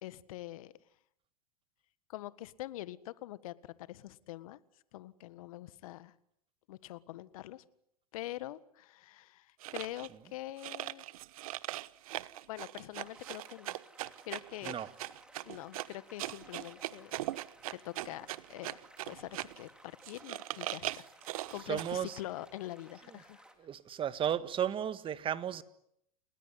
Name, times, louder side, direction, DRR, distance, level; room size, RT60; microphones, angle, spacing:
voice 1, 0.0-0.7 2.1-4.6 4.9-6.1 6.7-7.6 8.1-11.0 12.5-14.8 15.4-17.2 17.7-18.8 19.0-23.4, left 15 dB, 65° left, 1.7 m, -44 dB
sound 1, 9.6-10.1 10.6-19.6 20.0-22.0, right 16 dB, 65° right, 1.0 m, -40 dB
sound 2, 13.0-23.6, right 1 dB, 5° right, 3.8 m, -58 dB
voice 2, 21.7-22.2 23.6-25.6, right 9 dB, 25° right, 1.7 m, -34 dB
30.0 x 19.5 x 9.9 m
hypercardioid pair, 110°, 19 cm